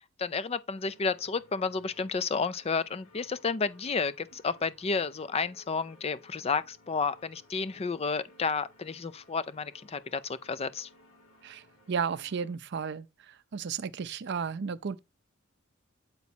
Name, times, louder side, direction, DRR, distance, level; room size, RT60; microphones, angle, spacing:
voice 1, 0.0-10.9, left 4 dB, 30° left, 0.5 m, -31 dB
sound 1, 0.7-12.5, left 1 dB, 90° left, 2.8 m, -60 dB
voice 2, 11.4-13.1 13.5-15.0, right 6 dB, 55° right, 0.5 m, -33 dB
8.3 x 4.1 x 4.3 m
head